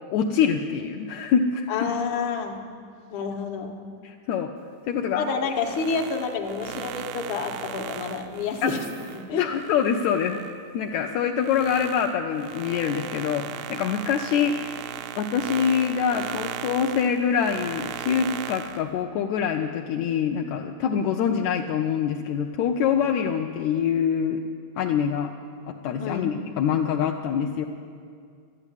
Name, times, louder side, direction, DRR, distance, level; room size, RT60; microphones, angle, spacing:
voice 1, 0.1-1.9 4.0-4.5 4.9-5.3 8.6-8.7 9.4-10.4 10.7-14.8 15.2-24.4 24.8-25.3 25.7-27.7, left 7 dB, 80° left, 3 dB, 1.8 m, -25 dB
voice 2, 1.7-2.6 3.1-3.8 5.1-8.8 9.1-9.5 26.0-26.3, left 5 dB, 60° left, 2 dB, 1.5 m, -29 dB
sound 1, 5.4-10.5 11.0-18.8, right 10 dB, 80° right, 1.7 m, -37 dB
12.0 x 9.0 x 9.7 m, 2.2 s
omnidirectional pair, 3.6 m